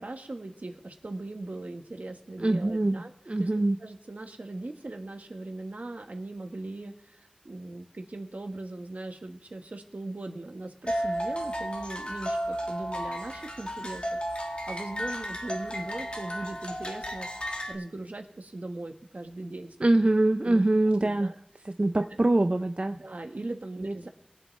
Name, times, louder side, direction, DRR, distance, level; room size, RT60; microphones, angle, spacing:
voice 1, 0.0-3.1 3.4-3.5 3.8-20.1 20.4-20.6 21.0-21.4 21.9-22.0 23.0-24.1, right 2 dB, 75° right, 4 dB, 1.4 m, -39 dB
voice 2, 2.4-3.8 19.8-21.3 21.6-23.0 23.8-23.9, right 2 dB, 45° right, 8 dB, 0.4 m, -24 dB
sound 1, 10.9-17.7, equal, 45° left, 1.5 m, -33 dB
22.5 x 7.5 x 3.2 m, 0.78 s
wide cardioid pair, 45°, 3 cm